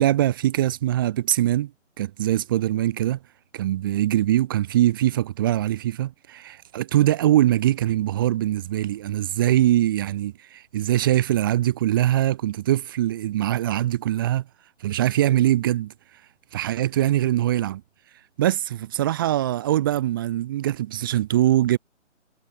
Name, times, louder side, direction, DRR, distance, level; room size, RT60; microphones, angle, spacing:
voice 1, 0.0-1.7 2.0-3.2 3.5-14.4 14.8-15.9 16.5-17.8 18.4-21.8, right 13 dB, 15° right, 2.6 m, -22 dB
hypercardioid pair, 170°, 37 cm